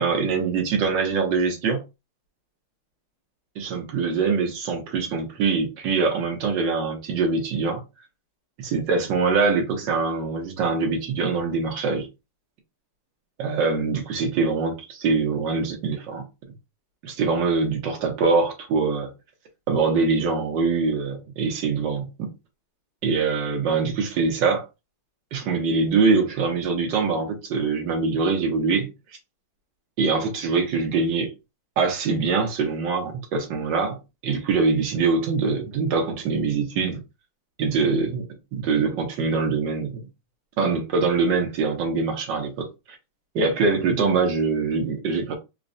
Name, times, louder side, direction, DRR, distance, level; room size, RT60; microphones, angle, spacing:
voice 1, 0.0-1.8 3.6-7.8 8.6-12.1 13.4-16.2 17.0-19.1 19.7-22.3 23.0-24.6 25.3-28.9 30.0-31.3 31.8-34.0 34.2-37.0 37.6-38.3 38.5-40.0 40.6-42.7 43.3-45.3, right 4 dB, 60° right, 1.5 m, -23 dB
4.2 x 2.2 x 2.6 m
omnidirectional pair, 2.4 m